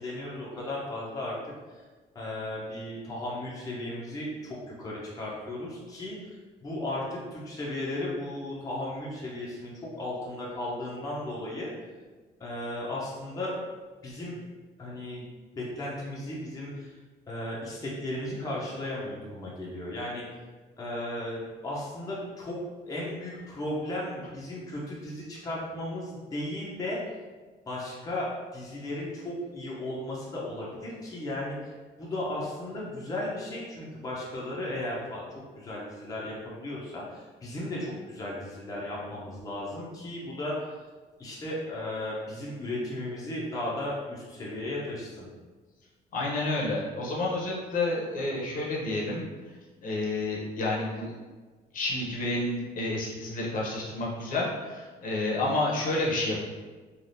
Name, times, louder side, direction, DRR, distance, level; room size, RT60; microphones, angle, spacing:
voice 1, 0.0-1.4 1.7-1.8 2.1-11.7 12.4-13.5 14.0-14.4 14.8-15.2 15.6-17.0 17.3-20.2 20.8-22.6 22.9-27.0 27.7-35.2 35.5-40.7 41.2-45.3, left 1 dB, 20° left, -5 dB, 0.7 m, -35 dB
voice 2, 46.1-51.2 51.7-56.4, left 2 dB, 55° left, -4 dB, 0.8 m, -30 dB
3.3 x 2.4 x 2.6 m, 1.4 s
cardioid pair, 110°, 17 cm